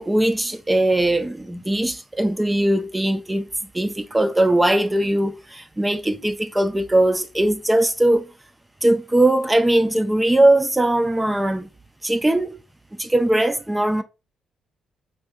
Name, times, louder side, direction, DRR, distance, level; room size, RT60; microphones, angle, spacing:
voice 1, 0.0-3.5 3.7-8.3 8.8-11.7 12.0-12.6 13.0-14.0, right 1 dB, 10° right, 0.3 m, -20 dB
3.5 x 2.7 x 2.4 m
cardioid pair, 90°, 0 cm